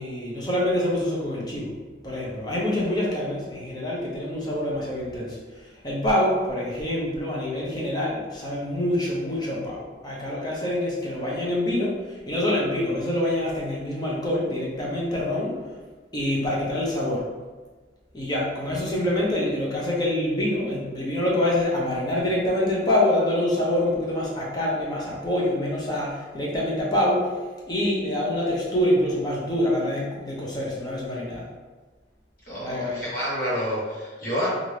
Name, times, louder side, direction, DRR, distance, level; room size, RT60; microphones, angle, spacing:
voice 1, 0.0-1.8 2.0-5.4 5.8-15.6 16.1-17.3 18.1-27.3 27.7-31.5 32.6-33.1, left 1 dB, 25° left, -4 dB, 0.7 m, -26 dB
voice 2, 32.5-34.5, equal, 55° left, -7 dB, 1.1 m, -28 dB
2.9 x 2.5 x 3.2 m, 1.3 s
head